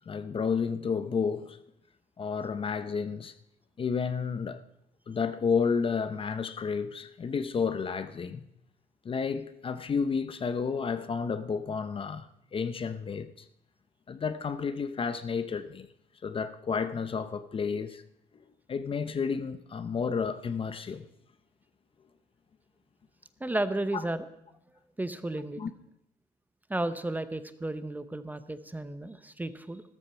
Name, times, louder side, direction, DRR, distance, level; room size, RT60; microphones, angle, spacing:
voice 1, 0.1-1.6 2.2-3.3 3.8-4.6 5.1-8.4 9.0-13.4 14.1-15.9 16.2-18.0 18.7-21.1 25.6-25.7, left 5 dB, 30° left, 0.7 m, -31 dB
voice 2, 23.4-24.3 25.0-25.6 26.7-29.8, right 1 dB, 10° right, 0.8 m, -33 dB
13.5 x 13.5 x 5.6 m
cardioid pair, 110°, 17 cm